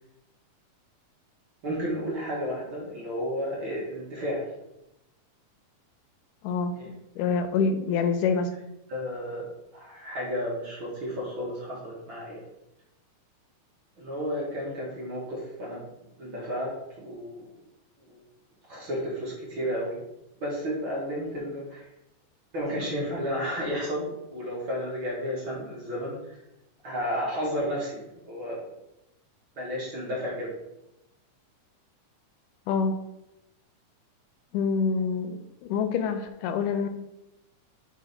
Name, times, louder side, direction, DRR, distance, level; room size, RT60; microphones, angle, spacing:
voice 1, 1.6-4.5 6.7-6.9 8.9-12.4 14.0-15.9 16.2-17.4 18.1-18.2 18.7-20.0 20.4-21.9 22.5-26.4 26.8-28.7 29.6-30.5, equal, 50° right, -5 dB, 1.6 m, -32 dB
voice 2, 7.2-8.5 32.7-33.0 34.5-36.9, left 5 dB, 85° left, 8 dB, 2.2 m, -26 dB
4.9 x 3.8 x 5.3 m, 0.88 s
omnidirectional pair, 3.7 m